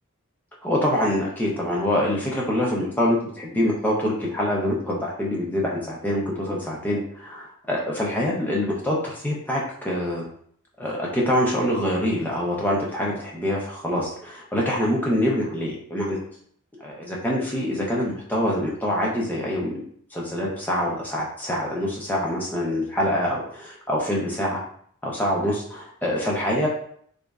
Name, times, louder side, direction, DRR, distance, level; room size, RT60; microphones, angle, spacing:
voice 1, 0.6-10.2 10.8-16.2 16.8-19.8 20.1-24.6 25.0-26.7, left 1 dB, 10° left, -4 dB, 0.5 m, -25 dB
3.0 x 2.4 x 2.3 m, 0.63 s
head